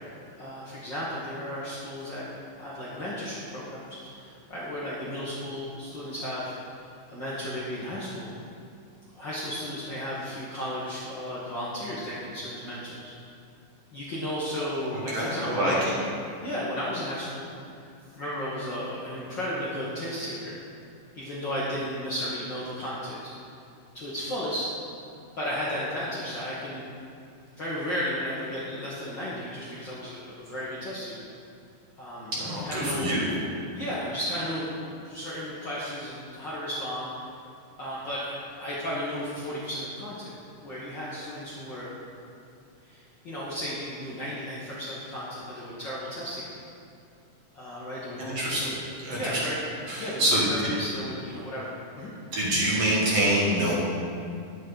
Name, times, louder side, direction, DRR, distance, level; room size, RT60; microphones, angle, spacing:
voice 1, 0.4-2.3 2.5-6.5 7.1-8.3 9.1-13.0 13.9-16.0 16.4-17.5 17.7-17.8 18.1-20.6 21.1-23.2 23.9-24.7 25.3-26.8 27.6-31.1 32.0-32.3 32.6-33.1 33.7-37.1 37.8-40.3 40.6-41.9 42.8-46.4 47.5-48.2 48.6-48.7 49.1-49.6 50.0-52.1, equal, 50° left, -9 dB, 1.5 m, -34 dB
voice 2, 14.9-16.0 32.3-33.3 48.2-48.8 49.0-49.4 49.9-50.7 52.3-53.7, right 1 dB, 55° right, -6 dB, 2.4 m, -26 dB
10.5 x 8.3 x 4.0 m, 2.5 s
omnidirectional pair, 3.9 m